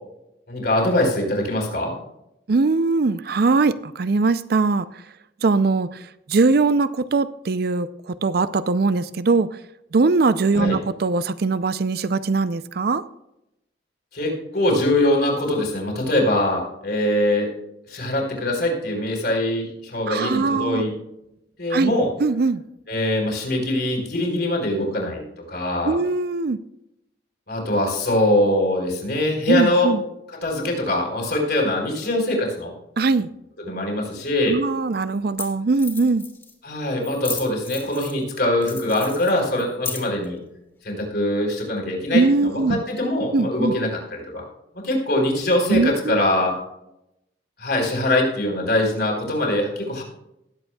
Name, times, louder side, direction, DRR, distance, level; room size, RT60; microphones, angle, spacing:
voice 1, 0.5-2.0 10.5-10.8 14.1-17.5 17.9-20.9 21.6-22.1 22.9-25.2 25.5-26.0 27.5-29.9 30.4-32.7 33.6-34.6 36.6-40.4 40.8-44.4 44.7-46.5 47.6-50.0, left 1 dB, 60° left, 0 dB, 4.6 m, -23 dB
voice 2, 2.5-4.9 5.4-5.9 6.3-9.5 9.9-13.0 20.1-20.8 21.7-21.9 22.2-22.6 25.8-26.6 29.5-30.0 33.0-33.3 34.5-36.2 42.1-42.8 43.3-43.7 45.7-46.2, right 3 dB, 55° right, 14 dB, 0.5 m, -21 dB
sound 1, 34.3-34.4 35.1-35.2 35.4-35.5 35.7-36.5 37.0-38.2 38.6-40.3, left 5 dB, 15° left, 2.5 m, -34 dB
19.5 x 8.0 x 2.3 m, 0.85 s
head